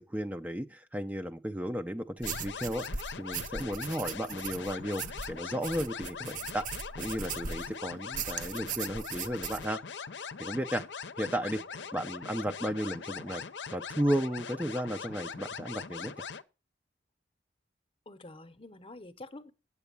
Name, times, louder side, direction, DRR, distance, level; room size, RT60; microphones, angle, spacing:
voice 1, 0.0-6.7 7.0-9.8 10.2-10.8 11.2-11.6 11.9-13.4 13.7-16.3, equal, 10° right, 0.4 m, -34 dB
sound 1, 2.2-16.4, left 6 dB, 80° left, 0.7 m, -41 dB
sound 2, 2.2-7.7 8.1-9.7, right 6 dB, 45° right, 0.7 m, -39 dB
voice 2, 11.3-11.9 18.1-19.5, left 2 dB, 30° left, 0.8 m, -49 dB
8.3 x 8.0 x 6.7 m
head